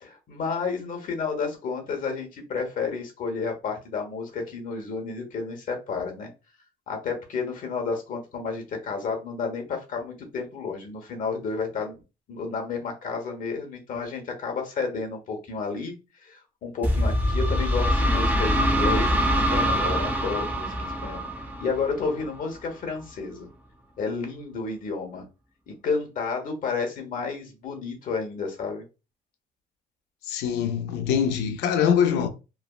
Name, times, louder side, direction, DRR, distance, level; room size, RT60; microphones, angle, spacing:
voice 1, 0.0-6.3 6.9-12.0 12.3-15.9 16.2-21.3 21.6-23.5 24.0-25.2 25.7-28.8, left 4 dB, 55° left, 1.0 m, -31 dB
sound 1, 16.8-22.5, equal, 10° right, 0.5 m, -24 dB
voice 2, 30.3-32.3, left 8 dB, 85° left, 0.5 m, -23 dB
3.3 x 2.1 x 2.3 m
cardioid pair, 110°, 17 cm